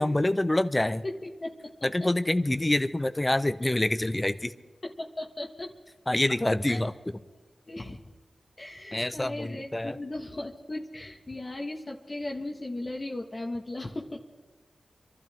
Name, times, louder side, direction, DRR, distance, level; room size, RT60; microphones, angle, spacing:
voice 1, 0.0-1.0 1.8-4.5 6.1-6.9 8.9-10.0, left 1 dB, 25° left, 11 dB, 0.9 m, -26 dB
voice 2, 1.0-1.5 2.0-2.1 3.6-3.7 4.8-5.8 6.7-6.8 7.7-8.0 8.6-14.2, left 2 dB, 40° left, 0 dB, 1.6 m, -37 dB
26.5 x 12.0 x 3.6 m, 1.4 s
cardioid pair, 45°, 0 cm